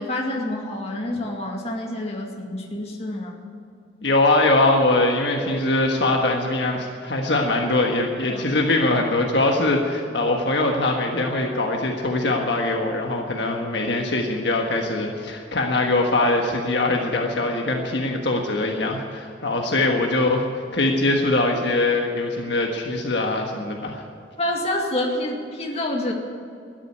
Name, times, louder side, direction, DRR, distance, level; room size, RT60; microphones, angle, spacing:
voice 1, 0.0-3.4 8.3-8.4 24.4-26.1, left 1 dB, 30° left, 0 dB, 2.2 m, -27 dB
voice 2, 4.0-24.0, left 2 dB, 60° left, 1 dB, 1.4 m, -22 dB
13.5 x 10.5 x 9.7 m, 2.4 s
head